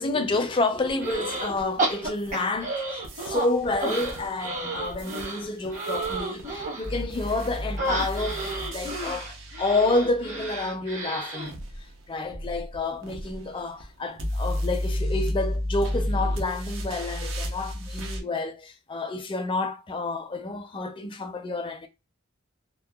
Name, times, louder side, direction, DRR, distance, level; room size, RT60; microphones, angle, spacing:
voice 1, 0.0-11.6 12.1-21.9, left 2 dB, 25° left, 0.4 m, -29 dB
sound 1, 0.9-2.7 3.0-10.7 11.4-18.2, left 1 dB, 70° right, 0.7 m, -33 dB
sound 2, 1.0-1.5 1.8-3.5 3.8-6.9 7.8-11.5, right 2 dB, 40° right, 1.0 m, -31 dB
2.8 x 2.1 x 2.2 m
head